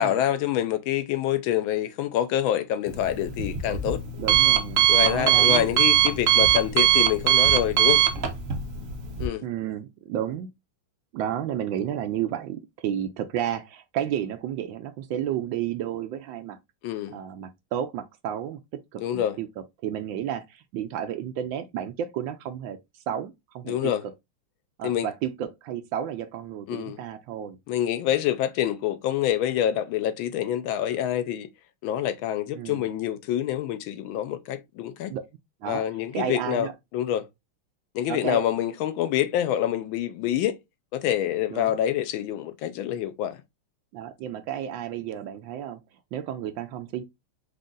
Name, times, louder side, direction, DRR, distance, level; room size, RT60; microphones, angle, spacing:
voice 1, 0.0-4.0 4.9-8.0 9.2-9.5 16.8-17.2 19.0-19.4 23.7-24.0 24.8-25.1 26.7-27.0 27.7-31.5 31.8-35.1 35.6-37.2 37.9-40.6 40.9-43.4, left 11 dB, 75° left, 1.3 m, -26 dB
Alarm, 2.9-9.3, right 11 dB, 55° right, 1.0 m, -21 dB
voice 2, 4.2-5.7 9.4-10.5 11.1-16.6 17.1-18.6 18.9-19.5 19.8-22.8 23.1-23.9 24.8-27.6 32.5-32.8 35.1-35.2 35.6-35.8 36.1-36.7 38.1-38.4 41.5-41.8 43.9-45.8 46.1-47.0, right 10 dB, 75° right, 1.2 m, -32 dB
5.1 x 2.4 x 3.7 m
omnidirectional pair, 2.3 m